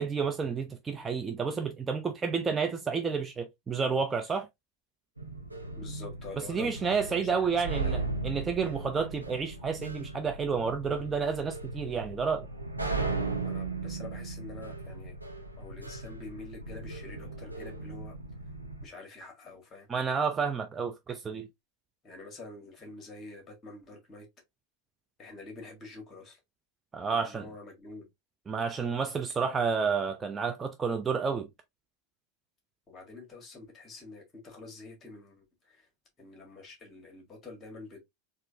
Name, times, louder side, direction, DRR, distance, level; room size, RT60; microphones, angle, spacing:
voice 1, 0.0-4.5 6.5-12.5 19.9-21.5 26.9-27.5 28.5-31.5, right 5 dB, 20° right, 0.5 m, -30 dB
sound 1, 5.2-18.9, right 3 dB, 90° right, 0.6 m, -37 dB
voice 2, 5.8-8.0 13.4-15.2 15.6-18.2 18.8-19.9 22.0-24.3 25.2-26.4 27.1-28.1 32.9-35.9 36.2-38.0, left 3 dB, 25° left, 1.8 m, -47 dB
4.2 x 2.6 x 2.6 m
figure-of-eight pair, 85°, 0 cm